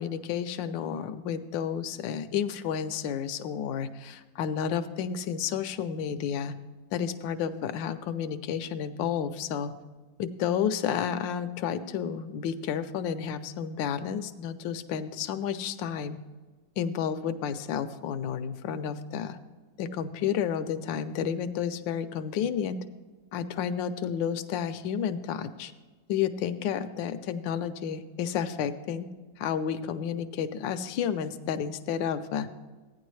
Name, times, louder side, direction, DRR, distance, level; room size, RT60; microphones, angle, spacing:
voice 1, 0.0-6.5 6.9-9.7 10.2-16.2 16.8-19.4 19.8-22.8 23.3-25.7 26.1-29.1 29.4-32.5, left 8 dB, 80° left, 10 dB, 1.3 m, -31 dB
15.0 x 9.7 x 3.1 m, 1.3 s
omnidirectional pair, 2.0 m